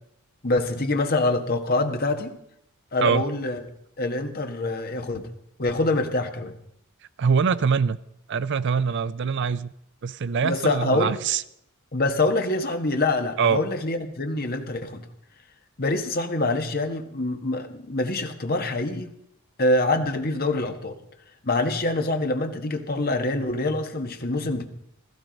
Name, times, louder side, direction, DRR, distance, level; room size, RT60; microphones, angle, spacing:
voice 1, 0.4-2.3 2.9-3.6 4.0-5.3 5.6-6.5 10.4-11.1 11.9-15.0 15.8-19.1 19.6-21.0 21.4-24.7, left 2 dB, 45° left, 1.4 m, -25 dB
voice 2, 7.2-8.0 8.3-9.7 10.0-11.4 13.4-13.6, right 6 dB, 50° right, 0.5 m, -23 dB
15.5 x 14.5 x 5.2 m
head